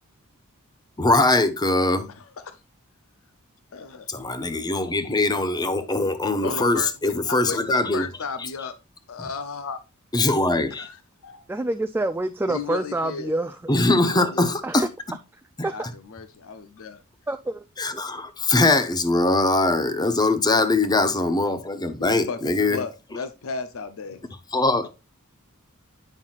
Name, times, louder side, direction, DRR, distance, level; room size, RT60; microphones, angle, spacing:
voice 1, 1.0-2.1 4.1-8.0 9.2-9.3 10.1-10.9 13.7-14.8 17.8-22.8 24.5-24.9, left 2 dB, 20° left, 0.8 m, -22 dB
voice 2, 2.1-2.6 3.7-4.1 6.4-8.7 9.1-9.8 10.8-11.4 12.5-13.3 13.8-14.5 15.7-15.8 16.1-17.0 22.0-24.2, left 4 dB, 65° left, 0.6 m, -34 dB
voice 3, 11.5-13.6 14.6-14.9 15.3-15.9 17.3-18.0, right 2 dB, 10° right, 0.3 m, -28 dB
9.0 x 5.6 x 2.4 m
head